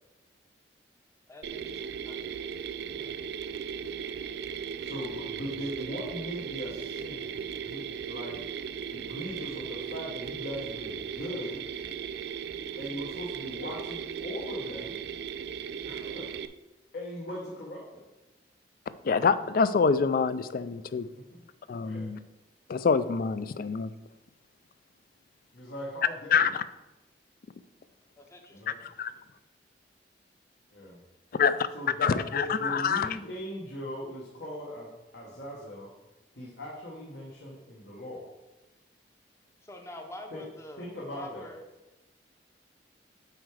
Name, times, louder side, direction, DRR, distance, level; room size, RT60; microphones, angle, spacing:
voice 1, 1.3-2.2 28.2-28.6 39.6-41.6, left 1 dB, 15° left, 4 dB, 0.7 m, -46 dB
Mechanisms, 1.4-16.5, right 7 dB, 65° right, 0.4 m, -37 dB
voice 2, 4.8-8.4 8.9-11.6 12.8-14.9 15.8-16.3 16.9-18.0 21.1-21.4 21.8-22.2 25.5-26.5 28.5-28.7 30.7-31.0 31.7-35.9 36.3-38.3 40.3-40.4 40.8-41.5, equal, 70° left, -4 dB, 1.4 m, -39 dB
voice 3, 19.0-21.1 21.7-22.2 22.7-23.9 26.3-26.5 29.0-29.1 31.4-31.5 32.0-33.1, left 5 dB, 55° left, 14 dB, 0.4 m, -25 dB
7.9 x 4.8 x 4.8 m, 1.0 s
head